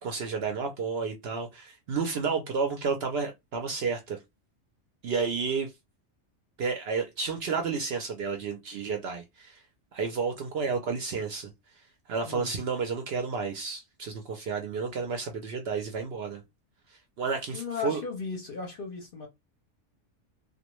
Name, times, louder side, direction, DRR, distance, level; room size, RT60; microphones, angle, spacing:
voice 1, 0.0-4.2 5.0-5.7 6.6-9.6 9.9-11.5 12.1-16.4 17.2-18.0, right 5 dB, 65° right, 0.7 m, -31 dB
voice 2, 17.5-19.3, left 5 dB, 55° left, 0.7 m, -36 dB
2.3 x 2.1 x 2.9 m
omnidirectional pair, 1.4 m